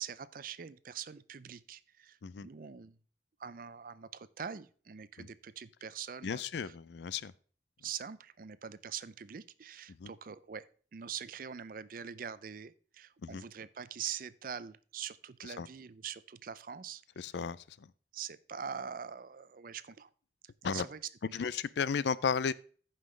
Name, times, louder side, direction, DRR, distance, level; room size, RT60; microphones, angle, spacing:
voice 1, 0.0-3.0 3.4-6.8 7.8-17.0 18.1-20.1 20.6-21.0, right 7 dB, 50° right, 0.5 m, -44 dB
voice 2, 6.2-7.3 10.0-10.1 13.3-13.4 15.6-15.7 17.2-17.6 20.6-20.8 21.3-22.5, left 6 dB, 70° left, 0.4 m, -33 dB
14.5 x 5.6 x 3.2 m
head